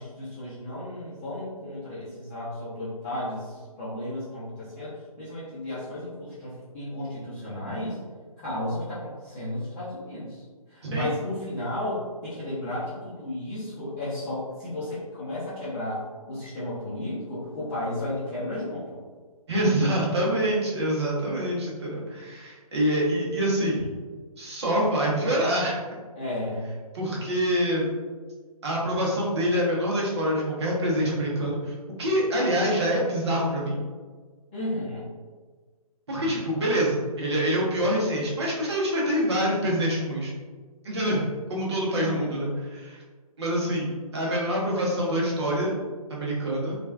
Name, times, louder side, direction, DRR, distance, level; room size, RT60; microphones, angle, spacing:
voice 1, 0.0-8.0 8.4-10.4 10.7-18.8 26.1-26.7 34.5-35.1 41.9-42.3, left 1 dB, 20° left, -13 dB, 0.7 m, -33 dB
voice 2, 10.8-11.1 19.5-23.9 24.4-25.8 26.9-27.9 28.6-33.8 36.1-40.3 40.8-41.2 41.5-43.0 43.4-45.8 46.1-46.8, equal, 45° right, -3 dB, 0.8 m, -26 dB
3.0 x 2.3 x 2.3 m, 1.4 s
figure-of-eight pair, 140°, 19 cm